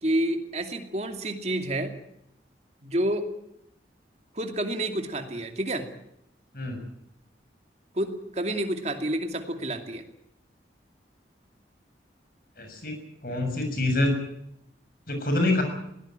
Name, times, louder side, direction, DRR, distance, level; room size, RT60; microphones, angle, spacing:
voice 1, 0.0-1.9 2.8-3.3 4.3-5.9 7.9-10.0, right 1 dB, 35° right, 6 dB, 2.6 m, -29 dB
voice 2, 12.6-12.9 13.2-14.1 15.1-15.6, left 2 dB, 50° left, 5 dB, 6.5 m, -25 dB
21.0 x 18.0 x 9.0 m, 0.78 s
head